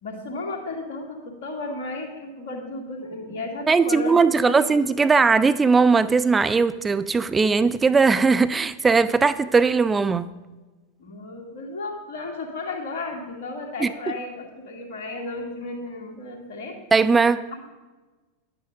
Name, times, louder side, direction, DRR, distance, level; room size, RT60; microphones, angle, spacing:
voice 1, 0.0-5.0 11.0-16.8 17.5-17.7, left 2 dB, 55° left, 2.2 m, -34 dB
voice 2, 3.7-10.3 13.8-13.9 16.9-17.4, right 4 dB, 15° right, 0.4 m, -19 dB
11.0 x 8.7 x 5.1 m
figure-of-eight pair, 90°, 0 cm